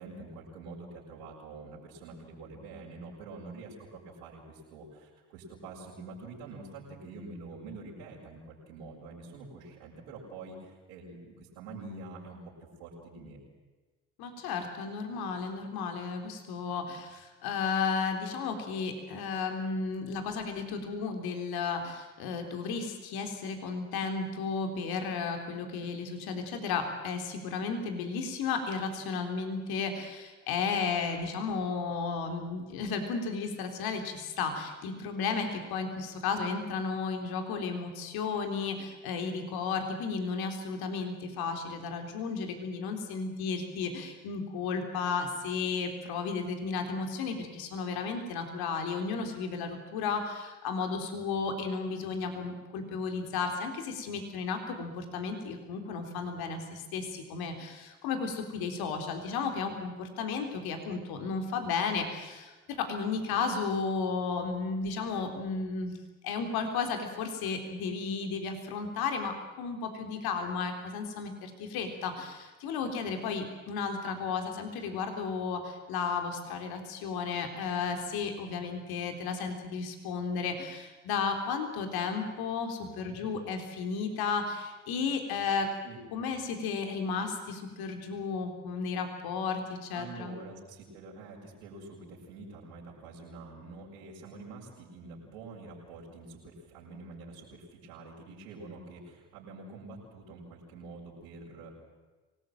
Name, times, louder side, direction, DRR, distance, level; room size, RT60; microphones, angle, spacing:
voice 1, 0.0-3.7 4.0-12.4 12.8-13.4 82.8-83.2 85.8-86.0 89.9-101.7, right 3 dB, 85° right, -8 dB, 6.2 m, -46 dB
voice 2, 14.2-66.0 66.2-85.7 86.1-90.4, left 5 dB, 75° left, 5 dB, 3.8 m, -33 dB
25.0 x 19.5 x 9.2 m, 1.2 s
hypercardioid pair, 60°, 37 cm